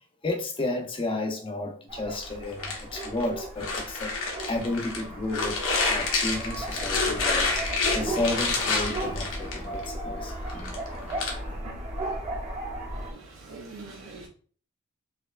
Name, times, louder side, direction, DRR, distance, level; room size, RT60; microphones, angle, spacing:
voice 1, 0.2-4.1 4.5-7.5 7.8-11.6, left 2 dB, 25° left, 0.6 m, -32 dB
sound 1, 1.9-13.1, right 1 dB, 30° right, 0.9 m, -35 dB
sound 2, 2.2-5.0 5.3-9.8 10.3-11.3, left 3 dB, 65° left, 0.9 m, -28 dB
voice 2, 12.9-14.3, right 3 dB, 65° right, 0.6 m, -44 dB
4.3 x 2.9 x 2.4 m
head